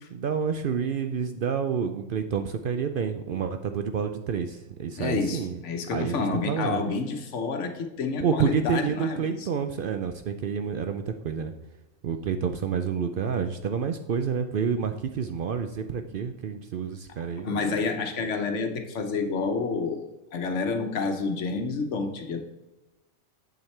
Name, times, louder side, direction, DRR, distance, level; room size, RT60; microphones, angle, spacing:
voice 1, 0.0-5.6 5.9-6.8 8.2-11.5 12.0-17.6, right 6 dB, 60° right, 7 dB, 0.6 m, -29 dB
voice 2, 5.0-9.5 17.4-22.4, left 4 dB, 75° left, 6 dB, 1.2 m, -29 dB
8.1 x 7.2 x 3.2 m, 1.0 s
omnidirectional pair, 1.2 m